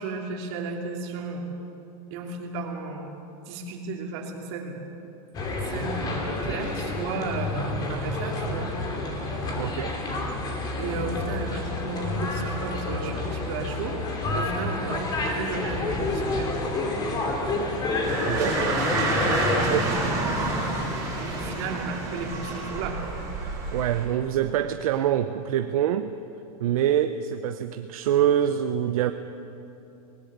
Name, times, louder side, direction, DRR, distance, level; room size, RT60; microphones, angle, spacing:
voice 1, 0.0-1.5 2.1-3.1 3.5-4.8 5.7-8.7 10.8-14.0 14.3-16.5 19.4-20.1 21.2-23.1, right 4 dB, 45° right, 2 dB, 3.0 m, -34 dB
sound 1, 5.3-19.6, left 2 dB, 20° left, 2.7 m, -29 dB
voice 2, 9.6-9.9 18.3-18.9 19.7-19.9 23.7-26.1 26.6-29.1, right 10 dB, 65° right, 9 dB, 0.8 m, -25 dB
sound 2, 18.0-24.1, right 2 dB, 20° right, 6.2 m, -28 dB
19.5 x 18.0 x 8.1 m, 2.8 s
supercardioid pair, 165°, 19 cm